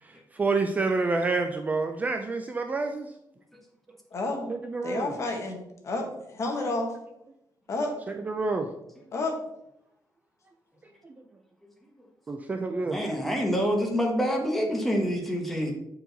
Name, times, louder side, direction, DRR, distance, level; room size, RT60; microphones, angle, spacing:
voice 1, 0.0-3.1 4.5-5.1 8.1-8.7 11.0-11.1 12.3-13.0, right 3 dB, 20° right, 5 dB, 0.4 m, -28 dB
voice 2, 4.1-4.5 4.8-6.9 7.7-7.9 9.1-9.4, left 2 dB, 45° left, 2 dB, 1.3 m, -30 dB
voice 3, 12.8-15.7, equal, ahead, 0 dB, 1.0 m, -26 dB
7.5 x 4.6 x 3.9 m, 0.81 s
wide cardioid pair, 180°, 7 cm